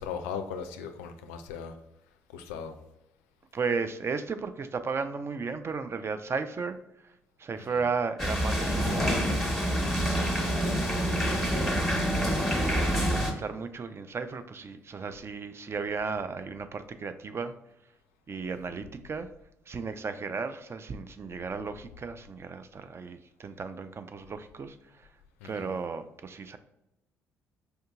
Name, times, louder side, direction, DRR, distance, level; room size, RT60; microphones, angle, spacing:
voice 1, 0.0-1.7 2.3-2.7 12.6-13.0 25.4-25.7, left 6 dB, 75° left, 7 dB, 0.4 m, -38 dB
voice 2, 3.5-7.1 7.4-11.8 12.5-17.5 18.3-19.3 19.7-25.1 25.4-26.6, right 5 dB, 35° right, 9 dB, 0.4 m, -35 dB
sound 1, 8.2-13.3, equal, ahead, 1.1 m, -27 dB
4.4 x 2.7 x 2.3 m, 0.89 s
hypercardioid pair, 45°, 8 cm